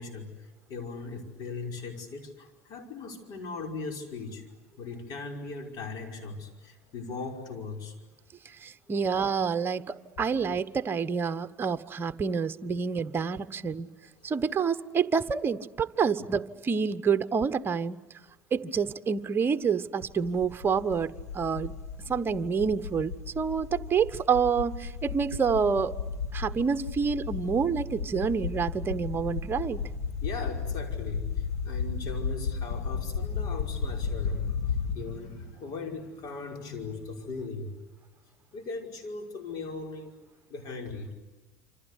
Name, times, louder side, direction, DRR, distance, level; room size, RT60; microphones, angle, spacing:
voice 1, 0.0-4.4 4.7-8.0 30.2-37.7 38.5-40.1 40.5-41.1, left 4 dB, 55° left, 3 dB, 5.4 m, -39 dB
voice 2, 8.6-13.9 14.2-18.0 18.5-21.7 22.1-25.9 26.3-29.8, right 6 dB, 25° right, 10 dB, 1.1 m, -28 dB
sound 1, 20.0-35.0, left 5 dB, 80° left, 2.5 m, -34 dB
27.5 x 26.0 x 8.3 m, 1.2 s
hypercardioid pair, 75°, 8 cm